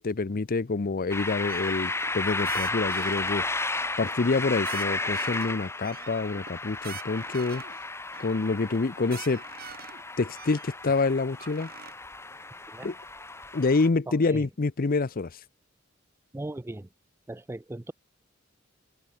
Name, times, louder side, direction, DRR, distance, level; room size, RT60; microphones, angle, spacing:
voice 1, 0.0-3.4 4.0-7.6 8.2-9.4 10.2-11.7 12.8-12.9 13.5-15.3, left 3 dB, 45° left, 0.6 m, -27 dB
sound 1, 1.1-13.9, left 3 dB, 15° left, 1.4 m, -33 dB
sound 2, 1.5-2.2 2.4-3.4 3.8-4.4 4.6-5.5 5.8-7.8 8.1-8.4 8.7-8.8 9.0-10.0 10.3-11.9, right 8 dB, 50° right, 4.0 m, -44 dB
voice 2, 14.1-14.5 16.3-16.9 17.3-17.9, right 1 dB, 10° right, 0.4 m, -38 dB
head